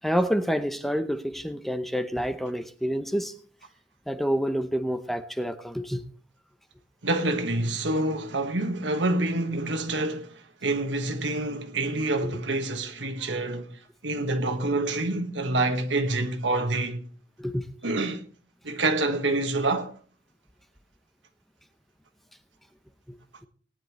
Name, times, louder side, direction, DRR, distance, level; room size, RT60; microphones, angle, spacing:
voice 1, 0.0-3.3 4.1-6.0 12.2-12.3 17.4-17.7, equal, ahead, 0.7 m, -28 dB
voice 2, 7.0-13.7 14.0-17.1 17.8-18.3 18.6-19.9, right 2 dB, 85° right, 1.6 m, -27 dB
18.5 x 10.0 x 3.1 m
head